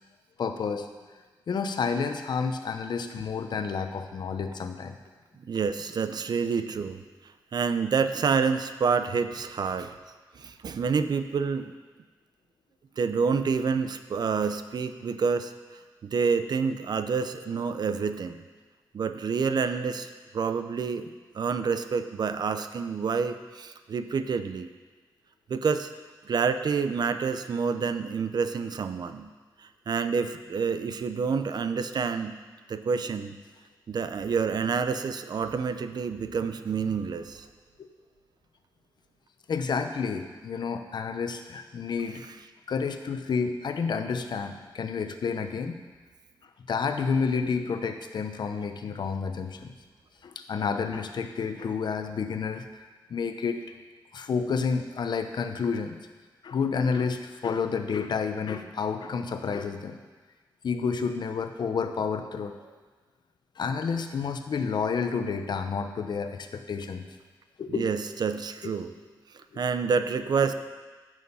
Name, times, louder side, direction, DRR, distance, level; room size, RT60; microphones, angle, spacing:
voice 1, 0.4-0.9 1.5-5.0 37.8-37.9 39.5-42.2 42.7-45.8 46.7-49.7 50.2-52.6 53.1-53.6 54.1-56.0 56.4-60.0 60.6-62.5 63.6-67.1 67.6-68.0 68.6-68.8 69.5-69.6, left 5 dB, 65° left, 7 dB, 0.9 m, -30 dB
voice 2, 5.4-7.0 7.5-9.9 10.4-11.7 13.0-15.5 16.0-18.4 18.9-21.1 21.3-24.7 25.5-25.9 26.2-29.3 29.6-32.3 32.7-33.4 33.9-37.5 67.7-68.9 69.3-70.5, right 5 dB, 60° right, 10 dB, 0.6 m, -28 dB
15.0 x 6.4 x 5.6 m, 1.3 s
wide cardioid pair, 140°, 8 cm